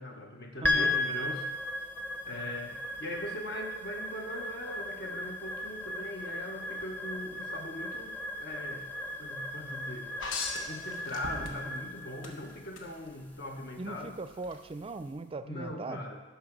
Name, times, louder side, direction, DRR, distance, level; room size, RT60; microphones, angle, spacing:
voice 1, 0.0-1.5 2.3-8.9 9.2-10.1 10.6-14.1 15.4-16.2, left 1 dB, 60° left, 2 dB, 1.0 m, -40 dB
sound 1, 0.6-15.0, left 1 dB, 10° left, 0.7 m, -36 dB
voice 2, 0.6-1.0 13.8-16.1, right 3 dB, 30° right, 11 dB, 0.4 m, -39 dB
sound 2, 10.2-11.8 12.2-12.9 14.4-14.5, left 3 dB, 80° left, 1.2 m, -37 dB
10.0 x 5.8 x 5.9 m, 1.2 s
head